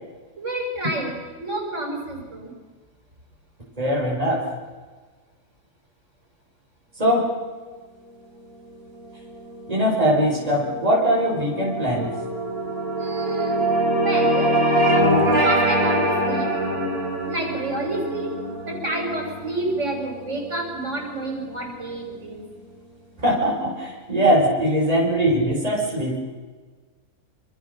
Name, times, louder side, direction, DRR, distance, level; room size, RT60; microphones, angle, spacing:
voice 1, 0.4-2.5 13.0-14.6 15.4-16.5 17.3-18.3 18.6-22.5, right 2 dB, 55° right, 1 dB, 6.2 m, -29 dB
voice 2, 3.8-4.4 7.0-7.3 9.7-12.1 23.2-26.2, equal, 25° right, -2 dB, 4.9 m, -21 dB
sound 1, 9.2-21.8, right 1 dB, 70° right, 4.6 m, -24 dB
27.5 x 26.0 x 6.6 m, 1.4 s
omnidirectional pair, 1.6 m